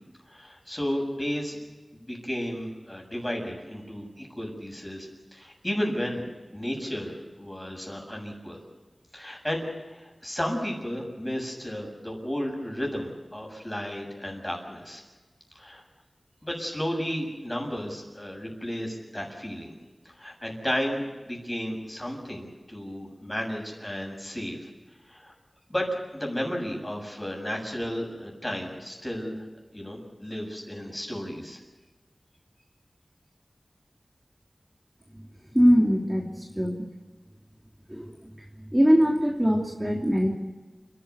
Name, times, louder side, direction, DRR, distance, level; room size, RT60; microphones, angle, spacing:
voice 1, 0.3-1.6 1.9-6.3 6.5-8.6 9.1-15.0 15.5-15.8 16.4-19.7 20.0-24.7 25.1-25.3 25.7-29.5 29.7-31.6, equal, 20° left, 1 dB, 7.4 m, -33 dB
voice 2, 35.5-36.8 37.9-38.3 38.7-40.3, equal, 15° right, -1 dB, 2.9 m, -22 dB
29.5 x 12.0 x 9.6 m, 1.2 s
wide cardioid pair, 45°, 0 cm